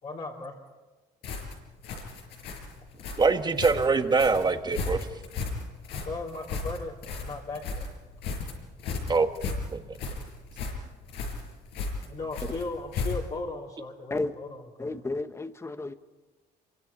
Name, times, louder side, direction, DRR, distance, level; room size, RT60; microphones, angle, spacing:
voice 1, 0.0-0.6 6.0-6.9 7.2-7.8 12.1-15.0, left 3 dB, 45° left, -4 dB, 3.3 m, -37 dB
sound 1, 1.2-13.5, left 4 dB, 80° left, 5.8 m, -35 dB
voice 2, 3.2-5.1 9.1-9.3 9.7-9.8, right 4 dB, 25° right, 8 dB, 1.5 m, -23 dB
voice 3, 14.8-15.9, left 2 dB, 15° left, 11 dB, 1.1 m, -32 dB
26.5 x 23.5 x 5.5 m, 1.2 s
cardioid pair, 110°, 17 cm